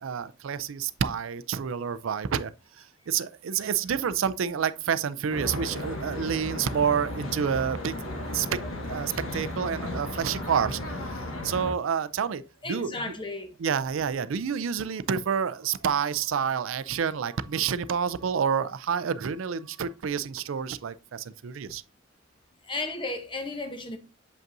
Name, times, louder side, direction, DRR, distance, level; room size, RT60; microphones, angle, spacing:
voice 1, 0.0-2.5 3.1-8.5 8.9-10.8 11.4-12.4 12.7-13.0 13.6-21.8, right 7 dB, 75° right, 0.4 m, -28 dB
Traffic noise roadway noise, 5.3-11.7, left 1 dB, 85° left, 1.3 m, -35 dB
voice 2, 12.6-13.6 22.6-24.0, left 2 dB, 25° left, 0.8 m, -34 dB
7.3 x 5.3 x 2.6 m
head